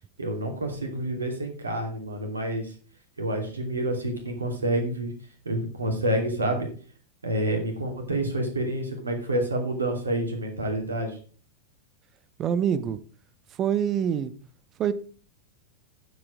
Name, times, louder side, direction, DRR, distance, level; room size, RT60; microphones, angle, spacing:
voice 1, 0.2-2.7 3.2-5.1 5.4-6.7 7.2-11.2, right 1 dB, 75° right, 4 dB, 2.8 m, -28 dB
voice 2, 12.4-13.0 13.6-14.3 14.8-14.9, right 8 dB, 30° right, 14 dB, 0.8 m, -25 dB
9.4 x 8.0 x 4.8 m, 0.40 s
figure-of-eight pair, 90°, 0 cm